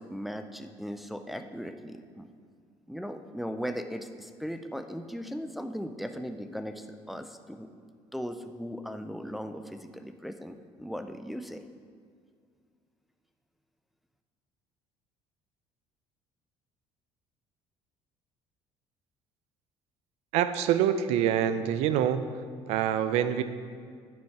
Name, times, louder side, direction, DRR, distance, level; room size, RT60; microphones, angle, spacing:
voice 1, 0.0-2.2 2.9-7.7 8.1-11.6, equal, ahead, 6 dB, 0.3 m, -38 dB
voice 2, 20.3-22.3 22.7-23.4, right 10 dB, 75° right, 11 dB, 0.5 m, -25 dB
9.2 x 7.2 x 4.7 m, 2.1 s
cardioid pair, 170°, 11 cm